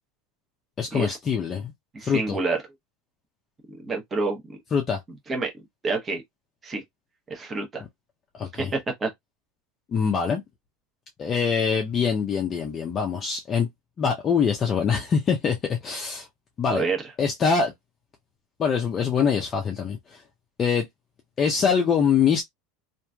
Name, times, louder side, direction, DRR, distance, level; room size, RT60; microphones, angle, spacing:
voice 1, 0.8-1.7 2.0-2.4 4.7-5.0 8.3-8.7 9.9-10.4 11.2-13.7 14.0-16.3 16.6-16.8 17.2-17.7 18.6-20.2 20.6-20.8 21.4-22.4, left 6 dB, 25° left, 0.5 m, -24 dB
voice 2, 1.9-2.6 3.7-4.6 5.3-6.2 6.6-6.8 7.3-7.8 8.6-9.1 16.7-17.1, right 3 dB, 20° right, 0.9 m, -28 dB
3.0 x 2.5 x 2.2 m
supercardioid pair, 145°, 0 cm